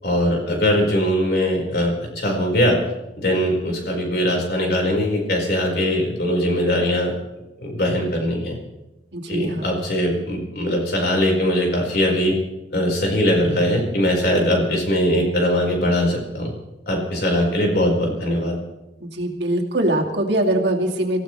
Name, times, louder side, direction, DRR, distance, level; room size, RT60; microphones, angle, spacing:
voice 1, 0.0-2.8 3.2-7.1 7.6-8.6 9.3-12.3 12.7-16.5 16.9-18.6, equal, 55° left, -1 dB, 5.0 m, -21 dB
voice 2, 9.1-9.7 19.0-21.2, right 1 dB, 70° right, 1 dB, 2.5 m, -22 dB
27.0 x 15.5 x 3.3 m, 1.0 s
head